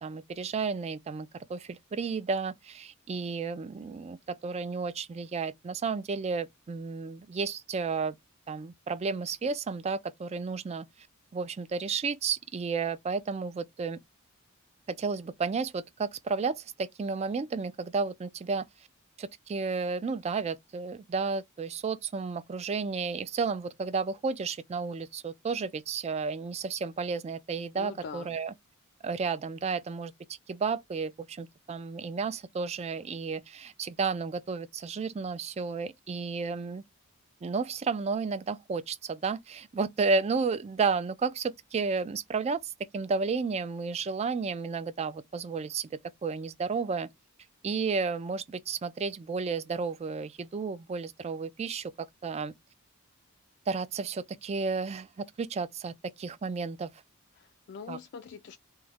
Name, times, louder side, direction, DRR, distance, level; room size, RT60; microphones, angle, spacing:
voice 1, 0.0-8.2 8.5-10.9 11.3-14.0 14.9-18.7 19.2-28.5 29.0-30.1 30.5-36.8 37.4-47.1 47.6-52.5 53.7-56.9 57.9-58.0, right 4 dB, 30° right, 0.3 m, -32 dB
voice 2, 27.7-28.3 57.4-58.6, left 6 dB, 50° left, 0.4 m, -43 dB
3.0 x 2.1 x 3.4 m
head